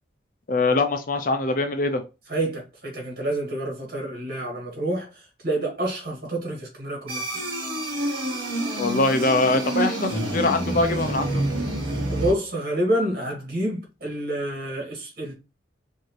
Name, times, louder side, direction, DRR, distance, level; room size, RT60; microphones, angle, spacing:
voice 1, 0.5-2.0 8.8-11.4, left 2 dB, 45° left, 0.6 m, -23 dB
voice 2, 2.3-7.2 12.1-15.3, right 1 dB, 50° right, 2.0 m, -28 dB
sound 1, 7.1-12.3, right 1 dB, 30° right, 2.1 m, -27 dB
4.6 x 2.8 x 3.2 m
head